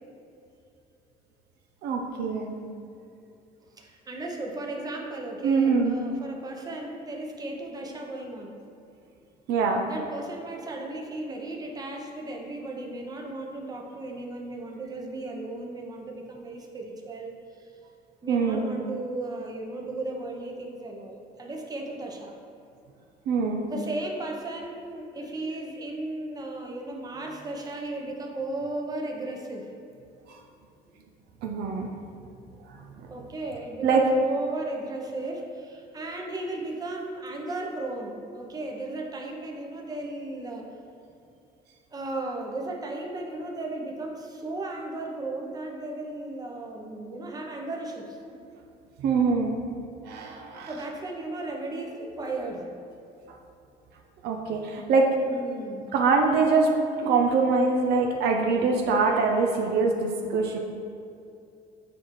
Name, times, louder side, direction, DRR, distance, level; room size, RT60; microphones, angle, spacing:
voice 1, 1.8-2.6 5.4-6.0 9.5-9.8 18.3-18.7 23.3-23.7 31.4-31.9 33.0-33.1 33.8-34.0 49.0-49.5 50.0-50.7 54.2-55.1 55.9-56.7 57.0-60.6, right 4 dB, 75° right, 2 dB, 0.6 m, -23 dB
voice 2, 3.8-8.5 9.9-17.7 18.2-22.3 23.7-29.7 33.1-40.7 41.9-48.2 50.7-52.7 55.2-55.9, right 2 dB, 20° right, 1 dB, 0.8 m, -35 dB
7.1 x 4.3 x 3.1 m, 2.6 s
cardioid pair, 110°, 17 cm